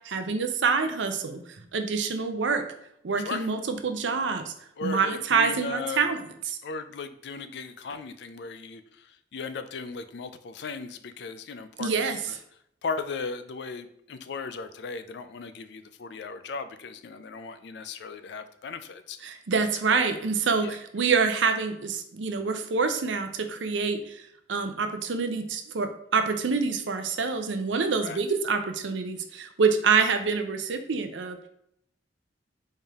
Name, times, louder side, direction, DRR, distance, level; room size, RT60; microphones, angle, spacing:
voice 1, 0.0-1.4 1.7-2.6 3.0-4.5 4.8-6.6 11.8-12.4 19.2-24.2 24.5-31.4, right 5 dB, 80° right, 7 dB, 0.6 m, -26 dB
voice 2, 4.8-6.1 6.6-9.1 9.3-12.0 12.8-19.2 20.6-20.7 27.9-28.2, left 4 dB, 65° left, 11 dB, 0.4 m, -37 dB
4.3 x 3.4 x 3.5 m, 0.73 s
head